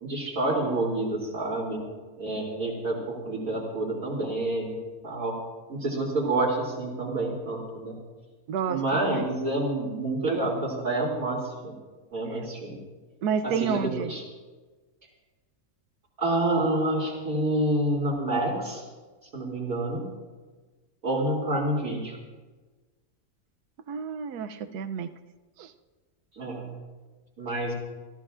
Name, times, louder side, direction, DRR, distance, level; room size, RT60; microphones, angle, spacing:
voice 1, 0.0-1.8 2.2-4.8 5.0-5.4 5.7-7.9 8.7-11.7 12.1-12.7 13.4-14.2 16.2-18.8 19.3-20.0 21.0-22.2 26.4-26.7 27.4-27.7, right 2 dB, 60° right, -7 dB, 3.3 m, -28 dB
voice 2, 8.5-9.3 12.3-12.4 13.2-14.1 23.9-25.1 25.6-25.7, right 7 dB, 80° right, 8 dB, 1.3 m, -30 dB
29.0 x 14.0 x 2.5 m, 1.3 s
omnidirectional pair, 1.7 m